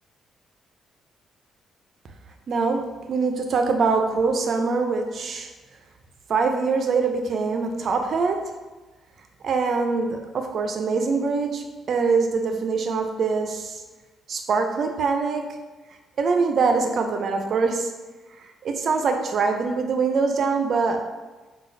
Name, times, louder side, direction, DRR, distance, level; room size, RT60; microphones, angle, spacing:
voice 1, 2.5-2.8 3.1-5.5 6.3-8.4 9.4-13.8 14.3-15.4 16.2-17.9 18.4-21.0, right 4 dB, 60° right, 4 dB, 0.4 m, -23 dB
3.8 x 2.3 x 2.6 m, 1.2 s
cardioid pair, 80°, 0 cm